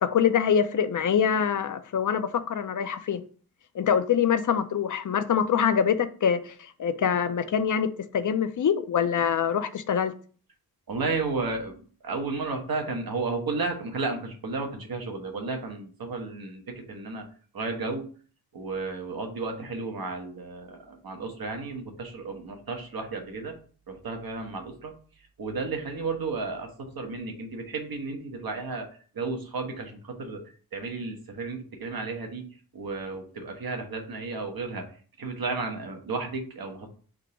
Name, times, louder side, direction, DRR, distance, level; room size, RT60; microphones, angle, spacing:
voice 1, 0.0-3.2 3.7-10.1, left 7 dB, 55° left, 0.5 m, -25 dB
voice 2, 10.9-11.8 12.0-17.2 17.5-18.1 18.5-23.6 23.9-24.9 25.4-28.9 29.1-32.5 32.7-34.8 35.2-36.9, right 3 dB, 70° right, 1.1 m, -33 dB
3.7 x 2.8 x 4.7 m
wide cardioid pair, 110°, 37 cm